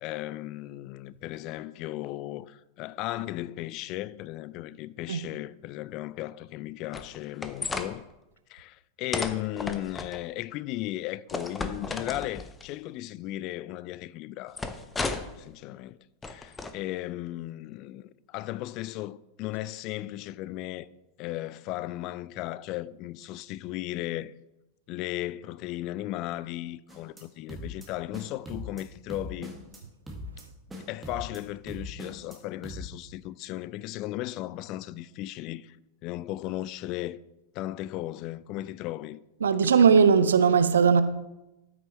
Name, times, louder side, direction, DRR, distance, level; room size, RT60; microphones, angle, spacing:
voice 1, 0.0-8.1 8.5-14.7 15.0-16.0 16.2-20.9 21.2-24.3 24.9-29.5 30.7-35.8 36.0-37.2 37.5-39.2 39.6-39.7, left 15 dB, 40° left, 0.3 m, -36 dB
sound 1, 6.9-7.9 9.1-10.2 11.3-12.6 14.6-15.4 16.2-16.7, left 3 dB, 15° left, 0.7 m, -33 dB
sound 2, 26.9-27.2 27.5-27.9 28.1-28.8 29.1-29.8 30.1-30.4 30.7-31.4 31.7-32.4 32.6-32.8, equal, 10° right, 1.7 m, -40 dB
voice 2, 39.4-41.0, right 6 dB, 65° right, 0.5 m, -19 dB
13.5 x 6.0 x 3.1 m
figure-of-eight pair, 90°, 0 cm